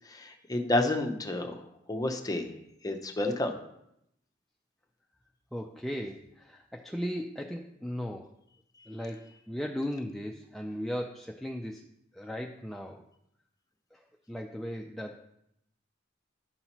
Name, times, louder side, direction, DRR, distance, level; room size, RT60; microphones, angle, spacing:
voice 1, 0.1-1.5 1.9-2.5 2.8-3.5, left 2 dB, 20° left, 5 dB, 0.7 m, -29 dB
voice 2, 5.5-8.3 8.9-11.9 12.1-13.0 13.9-15.3, equal, ahead, 1 dB, 0.3 m, -37 dB
10.5 x 5.6 x 2.9 m, 0.79 s
head